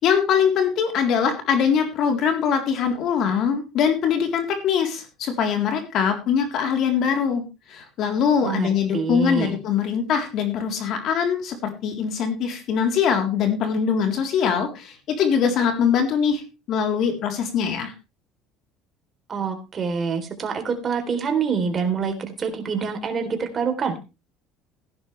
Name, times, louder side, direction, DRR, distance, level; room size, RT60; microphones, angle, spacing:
voice 1, 0.0-7.4 7.7-16.4 16.7-17.9, left 7 dB, 55° left, 5 dB, 3.7 m, -22 dB
voice 2, 8.4-9.6 19.3-24.0, right 5 dB, 35° right, 6 dB, 3.6 m, -26 dB
17.0 x 10.5 x 3.4 m, 0.29 s
cardioid pair, 115°, 0 cm